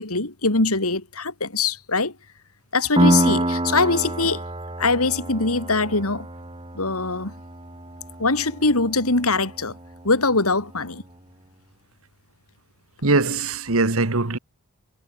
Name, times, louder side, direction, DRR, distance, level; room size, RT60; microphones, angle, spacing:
voice 1, 0.0-2.1 2.7-4.4 4.8-6.3 6.7-7.3 8.2-9.7 10.0-11.0, left 3 dB, 80° left, 4.0 m, -22 dB
Piano, 3.0-10.3, right 1 dB, 25° right, 3.5 m, -27 dB
voice 2, 13.0-14.4, right 3 dB, 75° right, 1.6 m, -21 dB
head